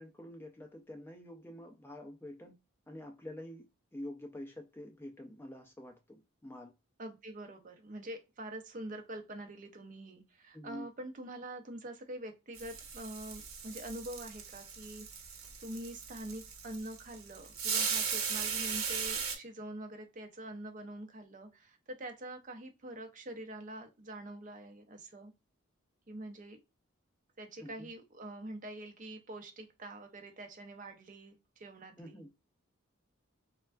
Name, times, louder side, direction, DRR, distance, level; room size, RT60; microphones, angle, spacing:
voice 1, 0.0-2.5 2.9-3.7 3.9-6.7 10.5-10.9 27.6-27.9 32.0-32.3, left 1 dB, 10° left, 0.3 m, -47 dB
voice 2, 7.0-15.3 15.6-25.3 26.1-26.6 27.4-32.2, right 1 dB, 40° right, 0.5 m, -45 dB
sound 1, 12.5-19.4, right 6 dB, 80° right, 0.8 m, -37 dB
3.4 x 2.2 x 2.2 m
head